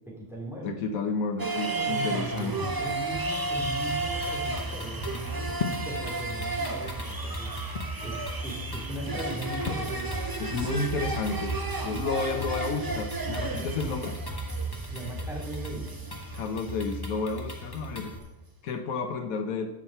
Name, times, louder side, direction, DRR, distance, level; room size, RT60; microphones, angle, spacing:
voice 1, 0.1-0.7 2.4-5.6 5.8-7.5 8.0-10.2 14.9-16.0, right 1 dB, ahead, -3 dB, 2.7 m, -39 dB
voice 2, 0.6-2.5 10.4-11.5 11.8-14.1 16.3-18.1 18.6-19.7, left 4 dB, 75° left, 6 dB, 1.3 m, -31 dB
sound 1, 1.4-17.8 18.0-18.1, right 3 dB, 25° right, 0.5 m, -33 dB
sound 2, 3.5-18.2, equal, 20° left, 1.1 m, -39 dB
sound 3, 5.6-5.9 6.8-8.0 9.7-9.9, left 6 dB, 45° left, 0.8 m, -33 dB
13.5 x 5.8 x 4.4 m, 1.0 s
omnidirectional pair, 1.5 m